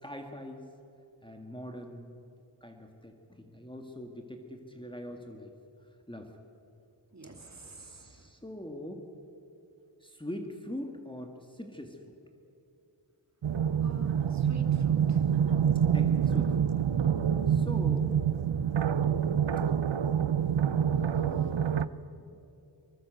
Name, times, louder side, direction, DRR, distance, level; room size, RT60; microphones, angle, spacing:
voice 1, 0.0-0.6 1.2-2.1 2.6-5.5 6.1-6.3 7.8-9.0 10.0-12.1 15.9-16.5 17.5-18.2 21.0-21.7 22.3-22.4, left 1 dB, 10° left, 3 dB, 2.0 m, -43 dB
voice 2, 7.1-8.2 13.8-15.2 21.1-21.6, right 3 dB, 35° right, 3 dB, 2.3 m, -48 dB
sound 1, 13.4-21.9, right 8 dB, 75° right, 0.7 m, -26 dB
23.5 x 20.5 x 7.9 m, 2.8 s
wide cardioid pair, 50°, 46 cm